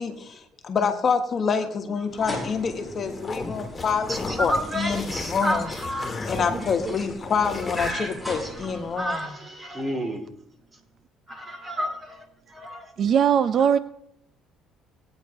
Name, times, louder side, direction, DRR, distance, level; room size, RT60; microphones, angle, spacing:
voice 1, 0.0-5.7 6.2-9.4, left 5 dB, 45° left, 1.3 m, -27 dB
sound 1, 2.1-9.3, left 1 dB, ahead, 4.3 m, -37 dB
sound 2, 3.1-7.9, left 3 dB, 25° left, 2.3 m, -36 dB
voice 2, 4.1-6.1 7.9-8.1 8.8-10.2 11.3-12.9, equal, 25° right, 2.7 m, -30 dB
voice 3, 13.0-13.8, right 8 dB, 55° right, 0.4 m, -21 dB
20.0 x 8.9 x 2.9 m
cardioid pair, 90°, 0 cm